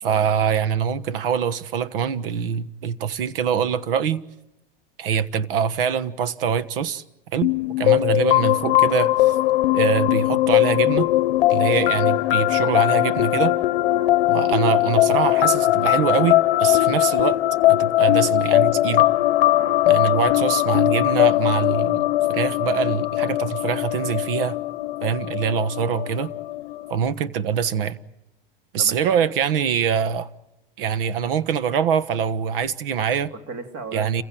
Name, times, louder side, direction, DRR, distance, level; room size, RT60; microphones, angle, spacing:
voice 1, 0.0-4.2 5.0-7.0 7.3-9.3 9.7-11.1 11.5-13.6 14.3-17.4 17.7-19.1 19.9-24.6 25.0-26.3 26.9-28.0 28.7-30.3 30.8-33.3 33.9-34.2, right 7 dB, 70° right, 1.4 m, -24 dB
sound 1, 7.4-26.9, left 16 dB, 70° left, 0.8 m, -20 dB
voice 2, 13.8-14.1 19.5-20.2 28.8-29.3 33.3-34.2, right 4 dB, 40° right, 3.3 m, -38 dB
29.0 x 16.0 x 9.1 m
supercardioid pair, 145°, 29 cm